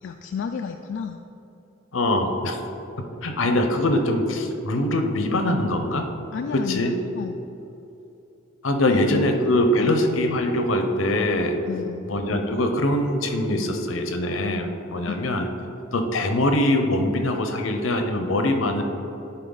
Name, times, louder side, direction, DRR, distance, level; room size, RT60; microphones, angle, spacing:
voice 1, 0.0-1.2 6.3-7.4 8.9-9.3 9.8-10.0 11.6-12.1 15.1-15.3, left 6 dB, 65° left, 5 dB, 0.3 m, -31 dB
voice 2, 1.9-2.6 3.0-6.1 6.5-6.9 8.6-11.6 12.0-15.5 15.9-18.8, left 1 dB, 80° left, 5 dB, 0.8 m, -23 dB
10.5 x 4.4 x 3.9 m, 3.0 s
head